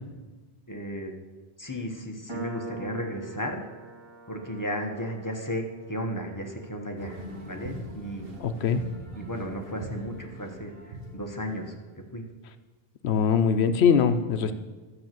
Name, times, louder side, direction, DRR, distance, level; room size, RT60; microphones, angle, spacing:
voice 1, 0.7-1.1 1.6-3.6 4.3-8.3 9.1-11.7 12.1-12.2, equal, 20° left, 2 dB, 1.1 m, -34 dB
Piano, 2.3-9.5, right 2 dB, 25° right, 2.7 m, -44 dB
sound 1, 7.0-12.1, right 1 dB, 60° right, 1.4 m, -41 dB
voice 2, 8.4-8.8 13.0-14.5, left 6 dB, 80° left, 10 dB, 1.0 m, -22 dB
12.0 x 6.3 x 7.6 m, 1.3 s
omnidirectional pair, 1.1 m